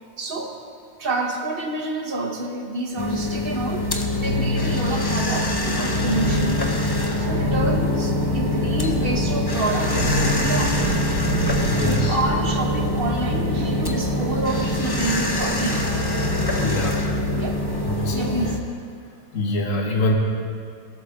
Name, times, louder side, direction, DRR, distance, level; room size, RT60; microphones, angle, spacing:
voice 1, 0.2-0.6 1.0-3.9 4.2-6.6 7.2-10.8 11.2-15.8 16.9-17.0 17.3-17.6 18.1-18.6, right 2 dB, 40° right, 3 dB, 1.2 m, -28 dB
sound 1, 3.0-18.6, left 2 dB, 20° left, 0.6 m, -26 dB
sound 2, 3.2-18.5, equal, 85° right, 1.9 m, -26 dB
voice 2, 11.6-12.2 16.6-17.0 17.9-18.3 19.3-20.1, left 2 dB, 50° left, 0 dB, 1.9 m, -24 dB
18.5 x 11.5 x 3.6 m, 2.2 s
omnidirectional pair, 1.8 m